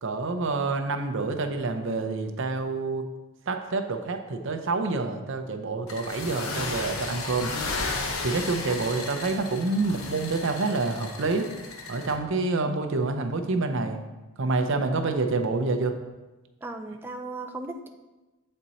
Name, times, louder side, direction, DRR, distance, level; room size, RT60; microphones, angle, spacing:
voice 1, 0.0-3.0 3.5-7.5 8.2-11.5 11.9-14.0 14.4-15.9, right 3 dB, 60° right, 6 dB, 0.6 m, -27 dB
sound 1, 5.9-12.2, left 3 dB, 70° left, 0.8 m, -34 dB
voice 2, 16.6-17.9, right 2 dB, 10° right, 4 dB, 0.4 m, -36 dB
7.5 x 4.4 x 4.0 m, 1.1 s
head